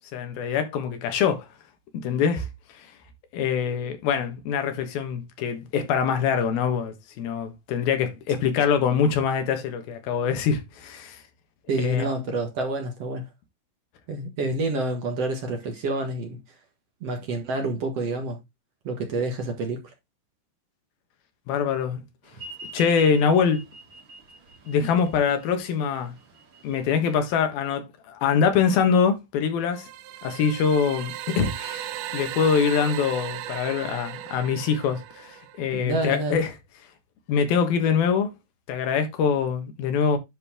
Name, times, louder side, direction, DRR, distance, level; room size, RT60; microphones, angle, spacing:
voice 1, 0.1-1.5 2.0-2.5 2.8-2.9 3.3-11.2 11.8-12.1 21.5-22.0 22.7-23.6 24.7-26.1 26.6-29.9 30.2-36.5 37.3-38.3 38.7-40.2, left 6 dB, 90° left, 3.3 m, -24 dB
voice 2, 11.7-13.3 14.1-16.4 17.0-18.4 18.8-19.8 35.7-36.4, right 2 dB, 55° right, 2.1 m, -28 dB
sound 1, 22.3-27.3, right 1 dB, 40° right, 2.4 m, -42 dB
sound 2, 29.7-35.7, right 13 dB, 75° right, 2.0 m, -36 dB
10.5 x 4.5 x 3.6 m
omnidirectional pair, 4.1 m